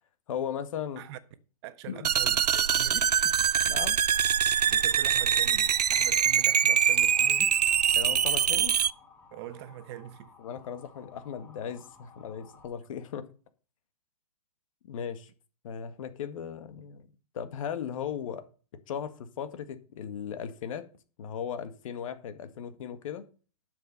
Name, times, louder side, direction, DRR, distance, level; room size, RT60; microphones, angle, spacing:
voice 1, 0.3-1.0 1.9-2.1 3.6-4.0 8.0-8.7 10.4-13.3 14.8-15.3 15.6-17.1 17.3-18.5 18.9-20.9 21.2-23.3, left 8 dB, 55° left, 1.9 m, -37 dB
voice 2, 1.6-3.4 4.7-7.8 9.3-10.3, right 12 dB, 40° right, 1.3 m, -43 dB
sound 1, 2.0-8.9, right 8 dB, 85° right, 0.5 m, -24 dB
Motor vehicle (road) / Siren, 4.1-12.6, left 4 dB, 10° left, 4.8 m, -55 dB
11.5 x 7.1 x 5.5 m
hypercardioid pair, 125°, 20 cm